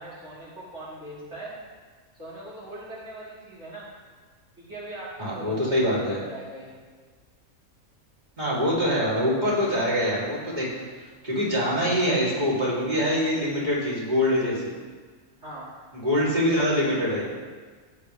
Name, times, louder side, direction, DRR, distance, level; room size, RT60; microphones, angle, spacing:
voice 1, 0.0-1.6 2.2-3.9 4.6-6.8 15.4-15.7, right 1 dB, 50° right, -8 dB, 2.9 m, -40 dB
voice 2, 5.2-6.2 8.4-10.7 11.2-14.7 15.9-17.2, equal, 30° right, -7 dB, 3.5 m, -24 dB
17.0 x 8.5 x 3.5 m, 1.5 s
omnidirectional pair, 1.5 m